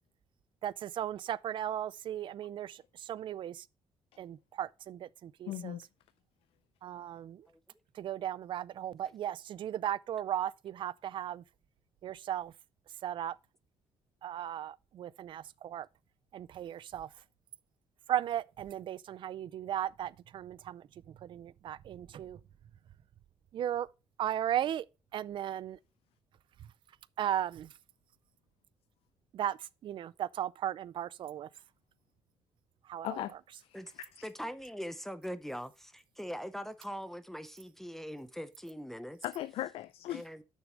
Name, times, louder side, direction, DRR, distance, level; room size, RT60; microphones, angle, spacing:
voice 1, 0.6-3.6 4.2-5.8 6.8-7.5 8.0-11.4 12.0-12.5 13.0-13.3 14.2-15.9 16.3-17.1 18.1-22.4 23.5-23.9 24.2-24.9 25.1-25.8 27.2-27.7 29.3-31.5 32.9-33.2, right 11 dB, 55° right, 0.4 m, -36 dB
voice 2, 5.5-5.8 33.0-33.3 33.6-34.3 39.2-40.2, left 13 dB, 80° left, 0.4 m, -38 dB
voice 3, 34.2-39.2 40.1-40.4, equal, 5° left, 0.6 m, -42 dB
6.4 x 6.3 x 5.0 m
cardioid pair, 115°, 10 cm